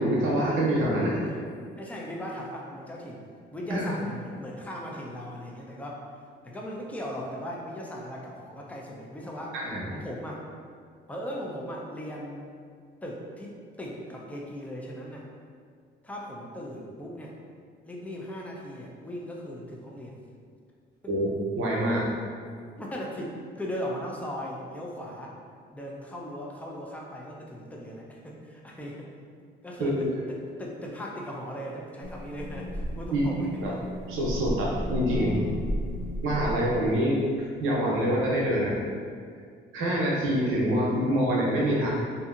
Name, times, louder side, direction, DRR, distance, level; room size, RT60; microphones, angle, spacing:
voice 1, 0.0-1.3 3.7-3.9 9.5-9.8 21.1-22.1 29.8-30.0 33.1-33.3 33.5-33.7 34.1-35.7 36.2-38.8 39.7-41.9, equal, 85° right, -4 dB, 0.7 m, -26 dB
voice 2, 1.8-6.0 6.4-9.6 9.9-10.4 11.1-12.5 13.0-15.3 16.0-17.3 17.8-20.2 21.0-21.1 22.8-25.3 25.7-29.1 29.6-33.9 39.8-40.0, equal, 5° left, -2 dB, 0.4 m, -38 dB
sound 1, 32.0-37.0, equal, 60° left, 0.5 m, -34 dB
2.7 x 2.4 x 2.4 m, 2.1 s
cardioid pair, 90°, 20 cm